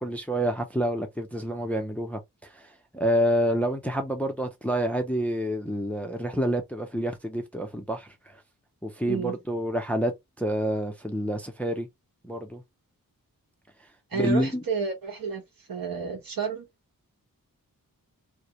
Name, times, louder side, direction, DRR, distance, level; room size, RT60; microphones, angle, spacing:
voice 1, 0.0-2.7 2.9-8.4 8.8-11.9 12.2-12.6 14.1-14.6, equal, 5° left, 0.4 m, -28 dB
voice 2, 14.1-16.7, right 5 dB, 75° right, 1.0 m, -31 dB
2.4 x 2.1 x 2.7 m
wide cardioid pair, 115°, 35 cm